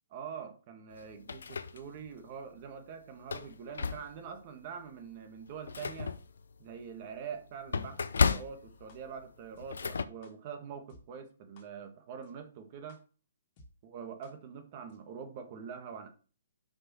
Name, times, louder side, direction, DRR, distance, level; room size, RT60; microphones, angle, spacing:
voice 1, 0.1-6.1 6.6-13.0 13.8-16.1, right 7 dB, 35° right, 7 dB, 1.5 m, -44 dB
sound 1, 0.9-2.2 2.6-2.7 3.2-4.4 4.9-5.0 5.4-10.0, left 5 dB, 85° left, 0.7 m, -34 dB
sound 2, 8.9-9.0 9.6-9.7 10.2-10.3 10.9-11.0 11.6-11.7 12.2-12.3 12.9-13.0 13.6-13.7 14.2-14.3 14.9-15.0, left 1 dB, 35° left, 2.0 m, -56 dB
6.0 x 5.2 x 6.1 m, 0.37 s
hypercardioid pair, 160°, 0 cm